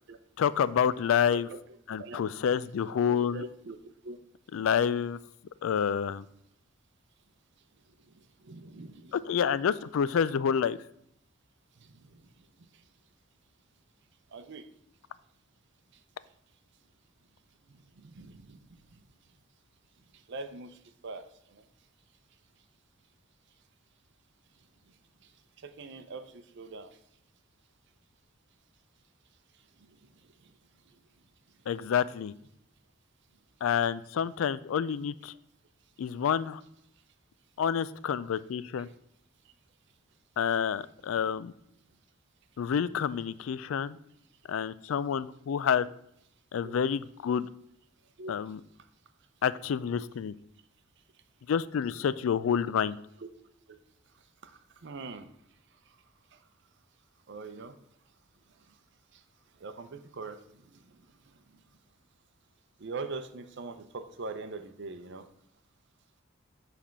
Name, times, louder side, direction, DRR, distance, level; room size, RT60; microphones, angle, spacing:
voice 1, 0.4-1.5 1.9-3.4 4.5-5.2 5.6-6.3 9.3-10.8 31.7-32.3 33.6-35.3 36.0-36.6 37.6-38.9 40.4-41.5 42.6-44.0 44.5-45.9 46.5-47.5 48.3-48.6 49.4-50.3 51.5-53.0, left 7 dB, 75° left, 17 dB, 0.3 m, -28 dB
voice 2, 3.0-3.8 4.0-4.2 4.5-4.7 8.4-9.4 11.9-12.1 14.3-14.6 18.0-18.6 20.3-20.8 21.0-21.2 21.5-21.6 25.6-26.9 46.6-46.7 48.2-48.3 53.2-53.3 54.4-55.3 56.3-56.4 57.3-57.7 59.6-60.4 60.7-60.8 62.8-65.2, right 3 dB, 60° right, 9 dB, 0.6 m, -42 dB
7.3 x 3.5 x 5.8 m, 0.73 s
head